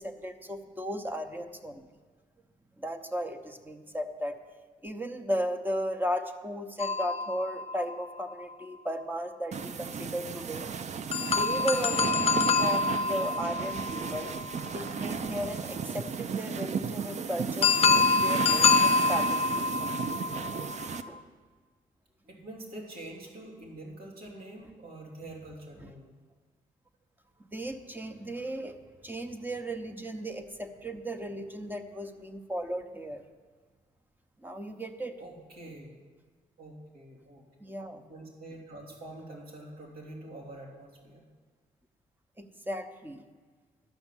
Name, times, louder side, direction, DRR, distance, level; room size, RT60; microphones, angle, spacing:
voice 1, 0.0-1.9 2.8-4.3 4.8-10.6 11.3-14.3 14.7-19.9 21.1-21.2 25.8-25.9 27.4-28.8 29.0-33.2 34.4-35.2 37.6-38.0 42.4-43.2, equal, 10° right, 6 dB, 0.9 m, -35 dB
sound 1, 6.8-8.5 11.1-15.0 17.6-21.1, left 4 dB, 40° left, 0.5 m, -27 dB
sound 2, 9.5-21.0, right 6 dB, 50° right, 0.6 m, -34 dB
voice 2, 22.3-26.1 35.2-35.9 36.6-37.7 38.1-41.2, right 1 dB, 85° right, -2 dB, 3.0 m, -45 dB
11.5 x 5.9 x 8.2 m, 1.5 s
cardioid pair, 85°, 15 cm